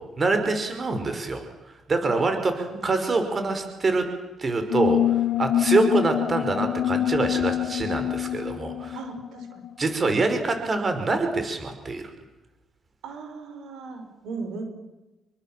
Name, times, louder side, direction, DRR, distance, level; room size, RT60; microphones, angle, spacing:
voice 1, 0.2-1.4 1.9-4.0 4.4-9.0 9.8-12.0, right 3 dB, 35° right, 7 dB, 5.3 m, -25 dB
sound 1, 4.7-9.9, left 12 dB, 70° left, 2.2 m, -25 dB
voice 2, 8.9-9.6 13.0-14.6, right 4 dB, 80° right, 6 dB, 6.3 m, -37 dB
27.5 x 24.5 x 7.7 m, 1.1 s
cardioid pair, 90°, 0 cm